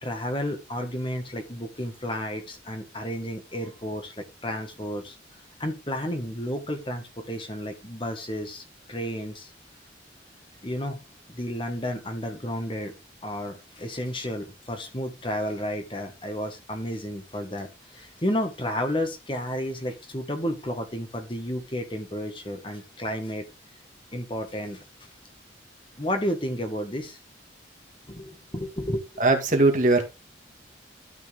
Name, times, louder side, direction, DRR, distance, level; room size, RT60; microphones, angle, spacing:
voice 1, 0.0-5.2 5.6-9.5 10.6-11.0 11.3-12.9 13.2-23.4 24.1-24.8 26.0-27.2 28.1-29.1, equal, 25° left, 1.7 m, -32 dB
voice 2, 29.2-30.0, right 2 dB, 40° right, 2.2 m, -20 dB
12.5 x 6.1 x 3.7 m
head